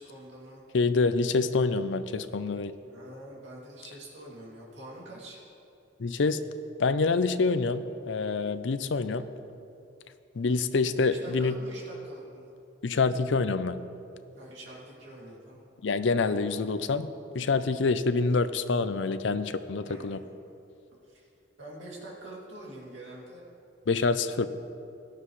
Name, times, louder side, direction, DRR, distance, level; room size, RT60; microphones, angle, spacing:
voice 1, 0.0-0.6 2.9-5.4 10.9-12.5 14.4-15.7 19.8-20.3 21.1-21.3 21.6-23.4, right 1 dB, 65° right, -4 dB, 2.7 m, -45 dB
voice 2, 0.7-2.7 6.0-6.4 6.8-9.2 10.4-11.6 12.8-13.8 15.8-17.1 17.3-20.2 23.9-24.5, left 4 dB, 70° left, 12 dB, 0.5 m, -26 dB
17.0 x 12.0 x 3.2 m, 2.7 s
head